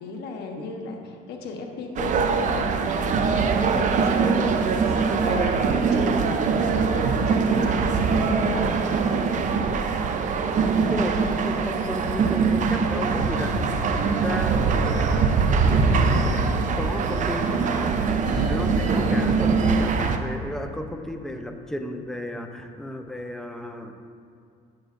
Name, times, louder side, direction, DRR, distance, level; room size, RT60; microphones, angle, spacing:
voice 1, 0.0-8.8 13.5-14.0 18.2-18.9, left 3 dB, 80° left, 2 dB, 1.1 m, -35 dB
sound 1, 2.0-20.2, right 5 dB, 50° right, 0.6 m, -22 dB
voice 2, 10.9-13.5 14.2-16.4 16.8-17.9 18.4-23.9, left 1 dB, 5° left, 5 dB, 0.5 m, -33 dB
9.3 x 7.7 x 2.5 m, 2.3 s
cardioid pair, 110°, 17 cm